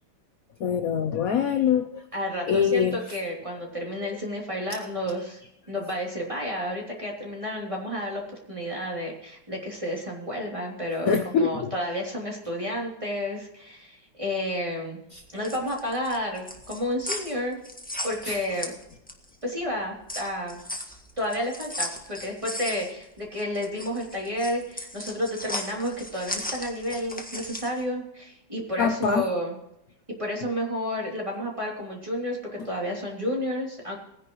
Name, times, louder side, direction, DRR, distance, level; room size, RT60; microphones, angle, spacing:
voice 1, 0.6-2.0 2.5-3.0 3.6-3.7 4.0-4.1 5.1-5.2 11.0-11.7 15.1-15.2 18.2-18.4 28.8-29.3, left 6 dB, 60° left, 7 dB, 1.0 m, -24 dB
voice 2, 2.1-5.4 5.7-8.2 8.5-15.0 15.3-17.6 18.0-18.7 19.4-20.6 21.2-29.5 30.2-34.0, left 1 dB, 15° right, -2 dB, 3.1 m, -31 dB
sound 1, 15.2-19.3 19.7-27.8, left 1 dB, 5° left, 1.4 m, -36 dB
20.0 x 10.5 x 3.1 m, 0.82 s
omnidirectional pair, 2.0 m